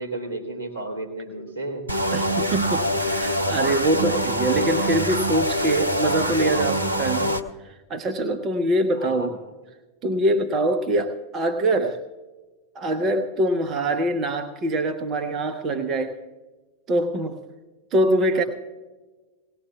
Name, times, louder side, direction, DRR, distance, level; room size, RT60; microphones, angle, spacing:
voice 1, 0.0-1.8 8.9-9.4 18.3-18.5, right 2 dB, 80° left, -3 dB, 2.8 m, -33 dB
sound 1, 1.9-7.4, equal, 85° right, 0.7 m, -24 dB
voice 2, 2.1-7.4 7.6-9.4 10.0-12.0 12.7-16.2 16.9-17.4 17.9-18.4, right 1 dB, 30° right, 8 dB, 0.8 m, -24 dB
20.0 x 18.0 x 2.3 m, 1.3 s
figure-of-eight pair, 90°, 0 cm